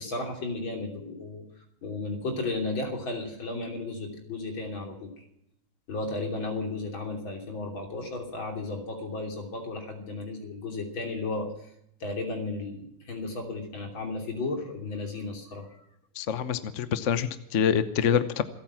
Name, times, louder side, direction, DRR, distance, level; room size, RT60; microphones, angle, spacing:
voice 1, 0.0-1.5 1.8-5.2 5.9-11.5 12.0-15.7, left 2 dB, 70° left, 2 dB, 3.9 m, -34 dB
voice 2, 16.2-18.4, left 8 dB, 50° left, 12 dB, 1.0 m, -26 dB
27.0 x 9.1 x 5.9 m, 0.77 s
omnidirectional pair, 2.2 m